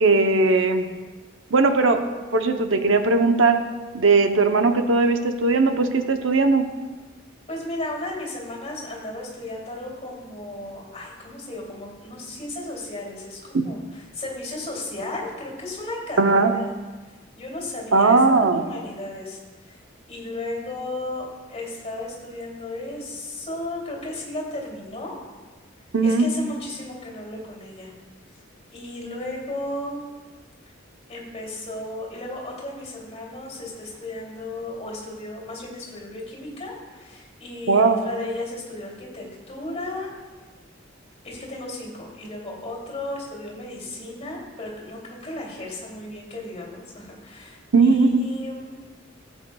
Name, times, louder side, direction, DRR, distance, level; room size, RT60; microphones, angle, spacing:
voice 1, 0.0-0.9 1.5-2.0 2.3-3.6 3.9-6.6 16.2-16.5 17.9-18.6 25.9-26.3 37.7-38.0 47.7-48.3, right 3 dB, 75° right, 6 dB, 0.7 m, -18 dB
voice 2, 7.5-16.6 17.4-19.4 19.7-19.8 20.1-25.1 26.0-27.9 28.7-30.0 31.1-40.1 41.2-48.7, left 2 dB, 35° left, -2 dB, 2.7 m, -34 dB
16.0 x 8.1 x 2.3 m, 1.3 s
head